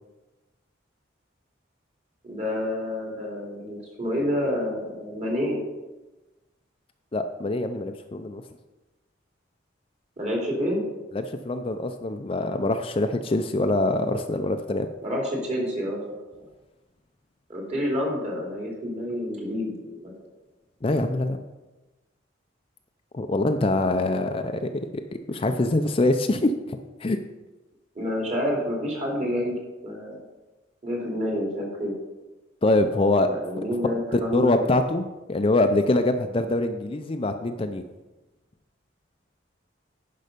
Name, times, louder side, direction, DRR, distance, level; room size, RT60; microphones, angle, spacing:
voice 1, 2.2-5.6 10.2-10.8 15.0-16.0 17.5-20.1 27.9-29.6 29.8-30.2 30.8-31.9 33.3-34.6, equal, 35° right, -1 dB, 2.6 m, -28 dB
voice 2, 7.1-8.4 11.1-14.9 20.8-21.4 23.1-24.9 25.3-27.2 32.6-33.3 34.1-37.8, left 2 dB, 30° left, 7 dB, 0.4 m, -24 dB
10.5 x 5.5 x 5.1 m, 1.1 s
head